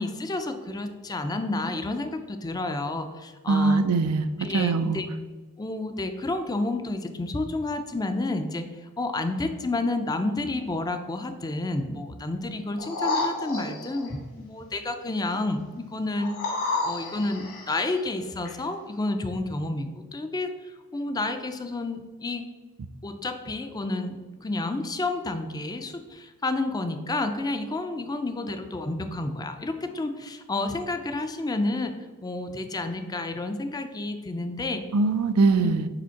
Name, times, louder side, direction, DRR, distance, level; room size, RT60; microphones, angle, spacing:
voice 1, 0.0-3.8 4.4-5.1 5.6-8.7 9.0-16.3 16.8-20.5 20.9-22.5 23.0-31.9 32.2-34.8 35.6-35.8, left 2 dB, 15° left, 7 dB, 0.4 m, -30 dB
voice 2, 3.5-4.3 4.5-5.0 34.9-35.9, right 3 dB, 85° right, 10 dB, 0.4 m, -22 dB
sound 1, 12.8-14.1 16.2-17.8 18.4-18.5, left 2 dB, 65° left, 1.8 m, -30 dB
5.0 x 3.6 x 5.7 m, 1.3 s
head